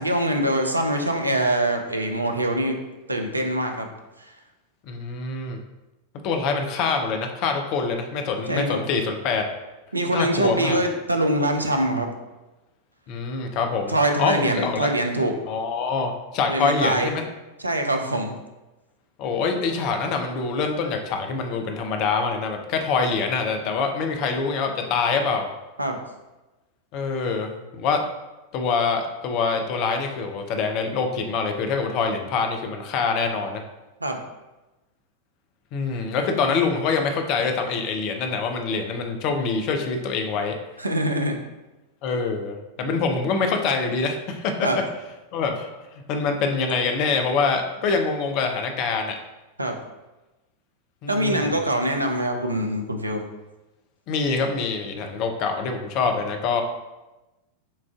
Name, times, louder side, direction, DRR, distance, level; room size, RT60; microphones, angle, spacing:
voice 1, 0.0-2.8 3.1-3.9 4.2-4.3 8.5-8.8 9.9-12.1 13.9-15.3 16.5-17.1 17.6-18.4 25.8-26.0 34.0-34.2 40.8-41.4 44.6-44.8 49.6-49.7 51.1-53.2, right 1 dB, 85° right, 4 dB, 0.4 m, -24 dB
voice 2, 4.9-5.6 6.2-9.4 10.1-10.8 13.1-14.9 15.5-17.2 19.2-25.5 26.9-28.0 28.5-33.6 35.7-40.5 42.0-44.7 45.3-45.7 46.1-49.1 51.0-51.6 54.1-56.6, left 4 dB, 40° left, 5 dB, 0.5 m, -25 dB
7.0 x 2.5 x 2.3 m, 1.0 s
figure-of-eight pair, 90°, 0 cm